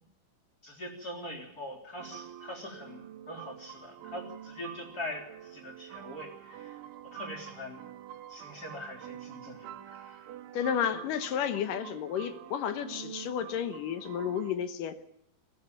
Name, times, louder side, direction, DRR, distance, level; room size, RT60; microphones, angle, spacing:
voice 1, 0.6-6.8 7.0-7.8 8.3-10.3, left 1 dB, 20° left, 1 dB, 3.4 m, -43 dB
sound 1, 2.0-14.5, right 11 dB, 85° right, 3.6 m, -47 dB
voice 2, 10.5-15.0, left 8 dB, 70° left, 9 dB, 2.1 m, -32 dB
22.0 x 15.0 x 9.0 m, 0.74 s
omnidirectional pair, 5.3 m